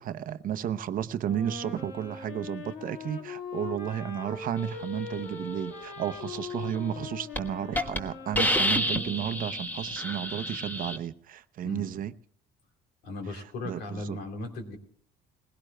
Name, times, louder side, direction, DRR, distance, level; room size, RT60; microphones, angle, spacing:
voice 1, 0.0-12.1 13.3-14.2, right 10 dB, 55° right, 0.7 m, -33 dB
Wind instrument woodwind instrument, 1.2-9.6, left 4 dB, 55° left, 2.8 m, -41 dB
Hiss, 6.8-7.0 7.4-7.5 7.8-8.0 8.4-11.0, equal, 10° left, 1.3 m, -28 dB
voice 2, 11.6-12.0 13.0-14.8, left 2 dB, 75° left, 3.0 m, -37 dB
20.5 x 17.0 x 2.2 m
cardioid pair, 110°, 17 cm